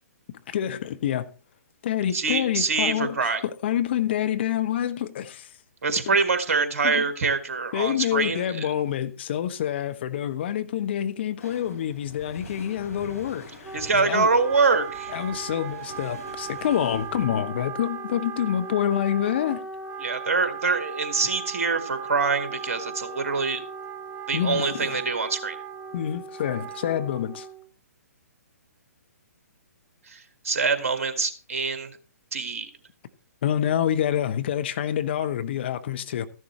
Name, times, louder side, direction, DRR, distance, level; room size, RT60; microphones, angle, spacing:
voice 1, 0.5-1.3 1.8-5.5 6.1-6.2 6.8-7.1 7.7-14.3 15.1-19.6 24.3-25.0 25.9-27.5 33.4-36.3, left 10 dB, 40° left, 0.8 m, -27 dB
voice 2, 2.1-3.4 5.8-8.7 13.7-15.1 20.0-23.6 24.3-25.6 30.1-31.9 32.3-32.7, right 4 dB, 55° right, 1.8 m, -25 dB
sound 1, 11.4-17.3, left 2 dB, 70° left, 4.5 m, -46 dB
Wind instrument woodwind instrument, 13.6-27.7, right 6 dB, 10° right, 0.7 m, -37 dB
14.0 x 11.0 x 3.2 m
figure-of-eight pair, 125°, 9 cm